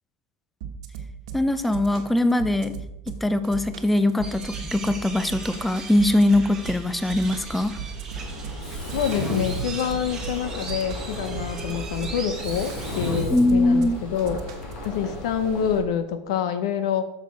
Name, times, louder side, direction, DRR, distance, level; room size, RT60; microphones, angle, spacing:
sound 1, 0.6-14.9, right 7 dB, 75° right, 1.3 m, -37 dB
voice 1, 1.3-2.7 3.1-7.8 13.3-14.0, left 1 dB, 5° left, 12 dB, 0.4 m, -22 dB
sound 2, 4.2-13.2, right 3 dB, 15° right, 1.6 m, -37 dB
Mechanisms, 8.2-15.8, left 1 dB, 35° left, 3.1 m, -34 dB
voice 2, 8.9-14.4 14.8-17.0, left 8 dB, 75° left, 10 dB, 0.8 m, -27 dB
8.2 x 6.6 x 4.7 m, 0.90 s
supercardioid pair, 165°, 3 cm